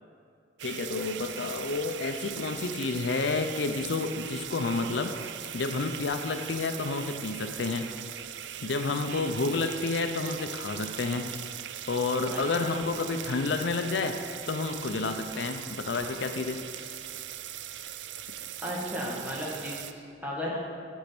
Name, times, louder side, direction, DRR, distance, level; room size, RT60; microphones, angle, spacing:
voice 1, 0.6-5.2 5.5-7.9 8.6-11.3 11.9-14.2 14.5-16.6, left 3 dB, 75° left, 6 dB, 0.6 m, -30 dB
sound 1, 0.6-19.9, right 10 dB, 75° right, 0.4 m, -40 dB
voice 2, 12.3-12.7 18.6-20.6, equal, 10° right, -5 dB, 1.9 m, -35 dB
12.0 x 5.2 x 6.0 m, 2.4 s
head